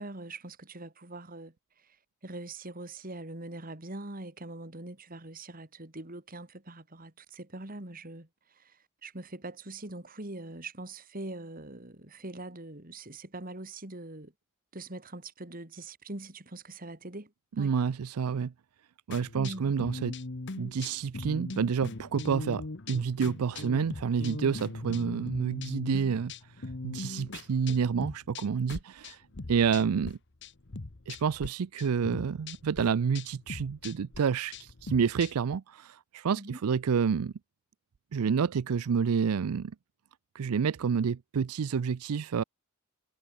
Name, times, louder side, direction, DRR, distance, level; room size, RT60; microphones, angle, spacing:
voice 1, 0.0-2.0 2.2-14.3 14.7-17.8 19.3-19.7 36.3-36.6, right 2 dB, 40° right, 2.8 m, -43 dB
voice 2, 17.6-18.5 19.1-20.2 20.6-26.3 26.8-29.2 29.5-30.2 31.1-37.3 38.1-39.7 40.3-42.4, right 6 dB, 85° right, 0.4 m, -29 dB
sound 1, 19.1-30.1 30.4-31.5 31.8-35.6, left 3 dB, 55° left, 1.1 m, -40 dB
head